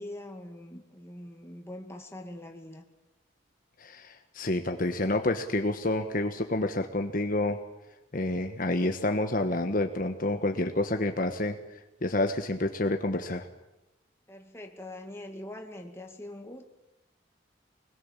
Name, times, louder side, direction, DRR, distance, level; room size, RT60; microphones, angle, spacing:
voice 1, 0.0-2.8 14.3-16.6, left 1 dB, 15° left, 3 dB, 2.3 m, -43 dB
voice 2, 3.8-7.6 8.1-13.5, left 2 dB, 45° left, 5 dB, 1.3 m, -29 dB
25.5 x 21.0 x 7.4 m, 0.98 s
head